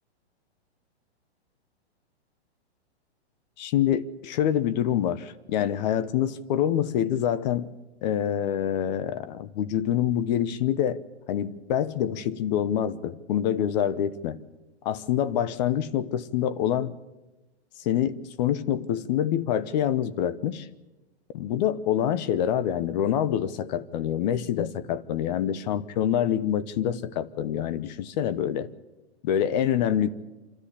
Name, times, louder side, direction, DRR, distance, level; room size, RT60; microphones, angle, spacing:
voice 1, 3.6-7.7 8.0-11.0 11.3-14.4 14.8-16.9 17.8-20.7 21.3-28.7 29.2-30.1, left 10 dB, 40° left, 16 dB, 0.9 m, -26 dB
26.0 x 13.5 x 8.4 m, 1.1 s
hypercardioid pair, 145°, 34 cm